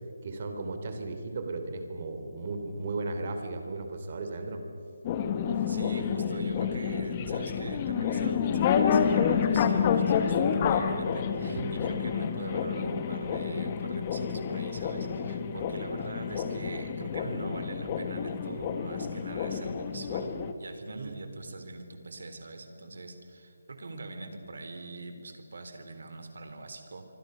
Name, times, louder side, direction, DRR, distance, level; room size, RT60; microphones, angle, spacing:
voice 1, 0.2-4.6 5.6-5.7 11.5-11.8 20.9-21.2, right 3 dB, 35° right, 6 dB, 3.0 m, -36 dB
sound 1, 5.0-20.5, left 7 dB, 20° left, 1.1 m, -29 dB
voice 2, 5.7-27.1, right 2 dB, 60° right, 7 dB, 3.8 m, -42 dB
27.5 x 24.5 x 6.7 m, 2.7 s
hypercardioid pair, 175°, 0 cm